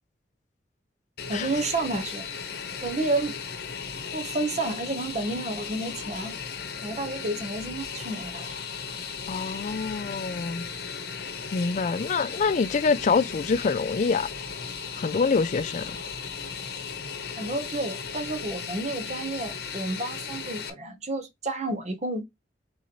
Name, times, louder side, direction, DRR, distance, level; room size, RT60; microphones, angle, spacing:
Fixed-wing aircraft airplane, 1.2-20.7, left 6 dB, 55° left, 0.9 m, -36 dB
voice 1, 1.3-2.3 2.8-3.3 4.1-6.3 6.8-8.5 17.3-22.2, right 2 dB, 40° right, 0.9 m, -30 dB
voice 2, 9.3-10.7 11.5-14.3 15.0-16.0, left 4 dB, 40° left, 0.4 m, -25 dB
4.2 x 3.8 x 3.0 m
head